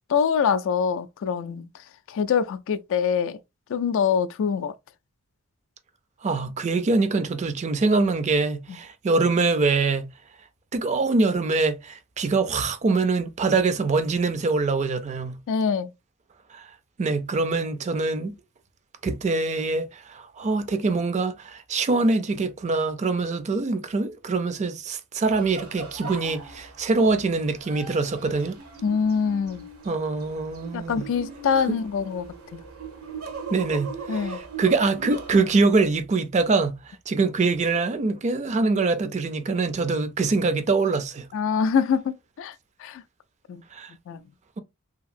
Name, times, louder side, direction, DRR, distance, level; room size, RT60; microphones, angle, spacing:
voice 1, 0.1-1.7 2.1-3.4 3.7-4.7 15.5-15.9 28.8-29.6 30.7-32.3 32.5-32.6 34.1-34.4 41.3-42.5 42.8-43.0 43.5-43.6 44.1-44.2, left 6 dB, 60° left, 0.3 m, -24 dB
voice 2, 6.2-10.1 10.7-15.4 16.5-16.6 17.0-18.3 19.0-28.6 29.9-31.0 33.5-36.8 37.1-41.2 43.7-43.9, right 3 dB, 35° right, 0.4 m, -24 dB
sound 1, 25.2-35.8, right 4 dB, 85° right, 0.9 m, -39 dB
2.8 x 2.6 x 2.4 m
head